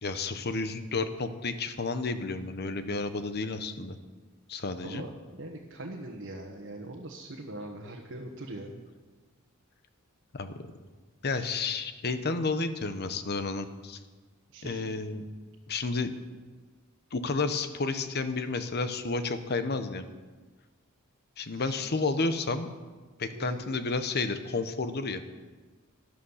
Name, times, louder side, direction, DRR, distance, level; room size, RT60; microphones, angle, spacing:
voice 1, 0.0-4.0 4.5-5.0 10.3-10.7 11.2-14.0 14.6-15.2 15.7-16.1 17.1-20.0 21.4-22.7 23.2-25.2, left 3 dB, 50° left, 10 dB, 0.9 m, -31 dB
voice 2, 4.8-8.8 11.3-11.5 14.5-14.9 21.5-21.7 23.3-23.8, right 1 dB, 60° right, -1 dB, 1.3 m, -42 dB
13.0 x 11.5 x 5.7 m, 1.3 s
head